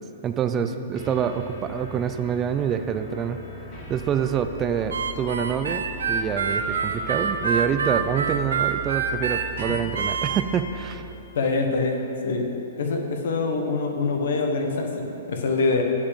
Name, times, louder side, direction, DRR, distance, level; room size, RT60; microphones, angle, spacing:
voice 1, 0.2-3.4 3.9-11.1, right 8 dB, 25° right, 9 dB, 0.4 m, -26 dB
sound 1, 0.9-11.3, right 1 dB, 40° left, 2.1 m, -39 dB
Harmonica, 4.9-10.4, right 5 dB, 75° right, 0.7 m, -26 dB
voice 2, 11.3-12.5 12.8-15.8, left 3 dB, 65° left, 3 dB, 1.2 m, -25 dB
8.1 x 5.0 x 7.5 m, 3.0 s
hypercardioid pair, 120°, 0 cm